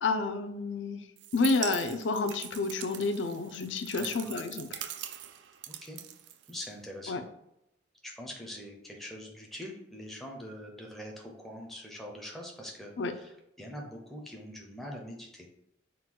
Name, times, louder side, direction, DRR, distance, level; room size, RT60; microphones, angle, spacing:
voice 1, 0.0-1.0 1.3-4.9 7.1-7.2 13.0-13.1, left 3 dB, 75° left, 8 dB, 0.4 m, -30 dB
sound 1, 1.2-6.9, right 11 dB, 70° right, 0.3 m, -42 dB
voice 2, 4.0-4.3 5.7-6.0 6.5-7.2 8.0-15.5, equal, ahead, 0 dB, 0.5 m, -43 dB
3.7 x 2.2 x 4.4 m, 0.80 s
head